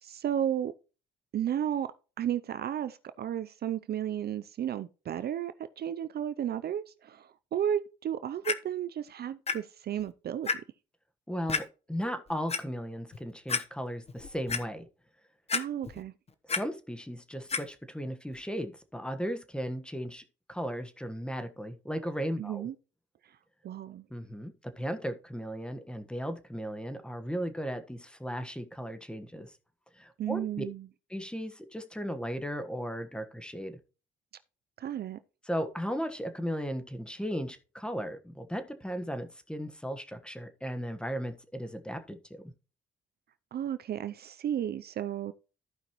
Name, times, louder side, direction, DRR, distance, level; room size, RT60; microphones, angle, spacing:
voice 1, 0.0-0.7 1.3-1.9 2.2-10.6 15.5-16.1 22.4-22.7 23.6-24.0 30.2-30.9 34.8-35.2 43.5-45.3, right 10 dB, 55° right, 0.5 m, -33 dB
Clock, 8.4-8.5 9.5-9.6 10.0-10.1 10.5-10.6 11.5-11.6 12.3-12.6 13.1-13.2 13.5-13.6 14.1-14.6 15.5-16.0 16.3-16.6 17.5-17.6 18.3-18.4, left 5 dB, 30° left, 1.0 m, -30 dB
voice 2, 11.3-14.9 16.5-20.2 20.5-22.7 24.1-29.5 29.9-30.6 31.1-33.8 35.4-42.5, equal, 5° left, 1.3 m, -36 dB
14.5 x 5.2 x 3.0 m
cardioid pair, 90°, 20 cm